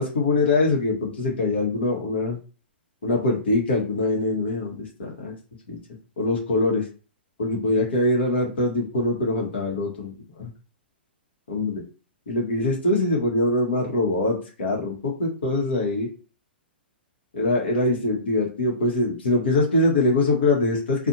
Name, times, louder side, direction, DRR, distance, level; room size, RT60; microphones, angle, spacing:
voice 1, 0.0-2.4 3.0-5.3 5.7-5.8 6.2-6.9 7.4-10.1 10.4-10.5 11.5-11.8 12.3-16.1 17.3-21.1, left 2 dB, 75° left, -2 dB, 1.1 m, -23 dB
2.6 x 2.3 x 2.6 m, 0.36 s
hypercardioid pair, 110°, 6 cm